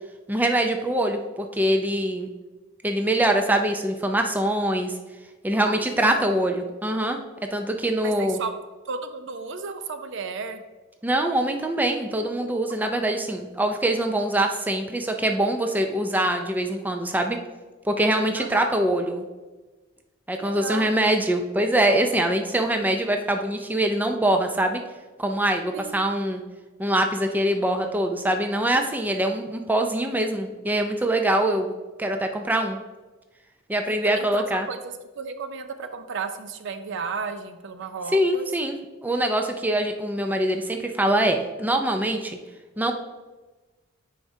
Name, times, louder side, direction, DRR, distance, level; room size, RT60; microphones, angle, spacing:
voice 1, 0.3-2.3 2.8-4.9 5.4-7.2 7.5-8.4 11.0-17.4 17.8-19.3 20.3-24.8 25.2-26.4 26.8-31.7 32.0-32.8 33.7-34.7 38.1-38.8 39.0-42.4 42.8-42.9, right 1 dB, 10° right, 4 dB, 0.4 m, -23 dB
voice 2, 5.5-6.6 8.0-8.5 8.9-10.6 13.1-13.2 18.4-18.8 20.4-20.9 25.7-25.9 33.9-34.8 35.2-38.5, right 5 dB, 65° right, 9 dB, 0.5 m, -34 dB
8.9 x 4.9 x 2.7 m, 1.2 s
head